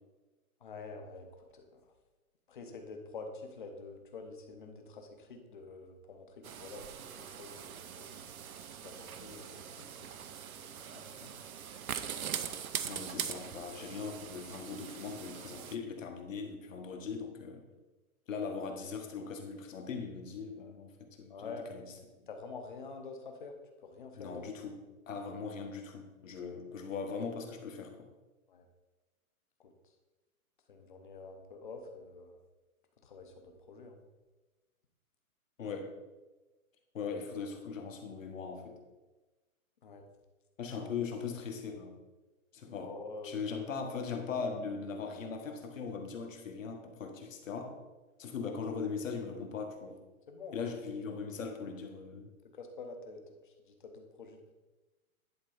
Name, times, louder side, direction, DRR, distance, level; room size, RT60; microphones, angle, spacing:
voice 1, 0.6-1.3 1.5-1.8 2.5-6.8 7.2-8.3 8.8-10.2 10.6-11.5 21.3-21.8 22.3-23.5 23.8-24.4 28.5-28.7 29.6-29.7 30.7-32.4 33.0-34.0 39.8-40.0 42.7-43.4 50.3-50.7 52.5-54.5, left 4 dB, 35° left, 5 dB, 0.9 m, -47 dB
sound 1, 6.4-15.8, right 8 dB, 75° right, 0.8 m, -42 dB
voice 2, 12.8-17.6 18.3-22.3 24.1-28.0 35.6-36.0 36.9-38.8 40.6-42.0 42.5-43.0 43.2-47.8 48.2-50.0 50.5-52.3, left 5 dB, 60° left, 4 dB, 1.5 m, -40 dB
10.5 x 4.1 x 4.9 m, 1.2 s
hypercardioid pair, 180°, 43 cm